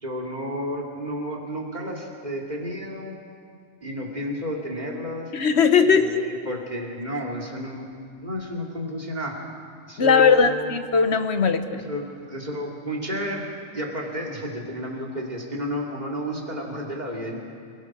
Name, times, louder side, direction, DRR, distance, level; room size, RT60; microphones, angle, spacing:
voice 1, 0.0-3.2 3.8-5.3 5.8-7.9 8.2-9.4 9.9-10.7 11.9-13.4 13.7-17.4, equal, 40° right, -2 dB, 3.0 m, -31 dB
voice 2, 5.3-6.2 10.0-11.9, left 6 dB, 70° left, 8 dB, 1.4 m, -19 dB
27.5 x 17.0 x 6.2 m, 2.2 s
omnidirectional pair, 1.2 m